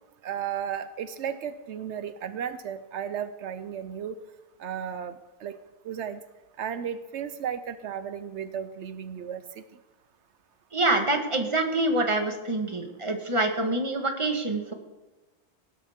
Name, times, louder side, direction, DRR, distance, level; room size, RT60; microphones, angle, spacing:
voice 1, 0.2-4.2 4.6-5.6 5.8-6.2 6.6-9.6, right 8 dB, 80° right, 12 dB, 1.0 m, -34 dB
voice 2, 10.7-14.7, right 2 dB, 25° right, 4 dB, 1.6 m, -26 dB
18.0 x 11.5 x 3.6 m, 1.1 s
omnidirectional pair, 1.1 m